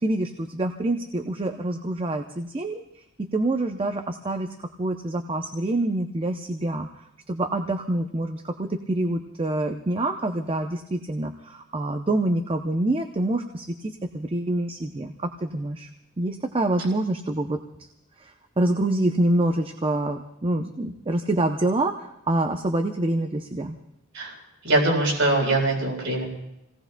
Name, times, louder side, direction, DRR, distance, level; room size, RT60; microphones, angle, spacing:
voice 1, 0.0-6.9 7.3-15.9 16.2-17.6 18.2-23.8, right 1 dB, 25° right, 5 dB, 0.6 m, -26 dB
voice 2, 24.6-26.3, right 2 dB, 70° right, -1 dB, 3.9 m, -22 dB
29.0 x 18.0 x 2.2 m, 0.85 s
head